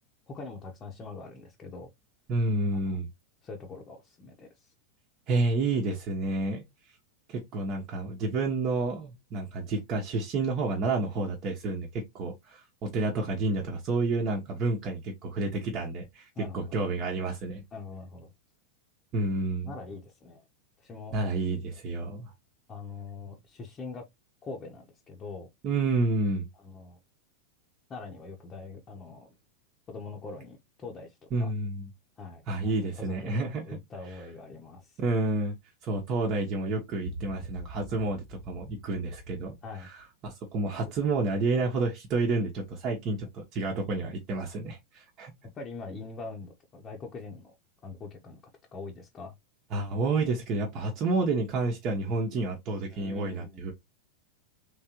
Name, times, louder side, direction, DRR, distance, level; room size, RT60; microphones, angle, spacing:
voice 1, 0.3-1.9 2.7-3.0 3.4-4.5 16.3-16.7 17.7-18.3 19.6-20.4 20.8-21.2 22.7-24.1 24.4-25.5 26.6-27.0 27.9-29.3 29.9-31.5 32.2-35.0 39.6-39.9 45.5-47.5 47.8-48.4 48.7-49.3 52.9-53.7, left 4 dB, 25° left, 1.0 m, -43 dB
voice 2, 2.3-3.1 5.3-6.6 7.3-17.6 19.1-19.7 21.1-22.3 25.6-26.5 31.3-31.9 32.5-33.8 35.0-35.5 35.8-45.3 49.7-53.7, right 3 dB, 35° right, 1.1 m, -30 dB
3.8 x 3.4 x 2.9 m
figure-of-eight pair, 90°, 0 cm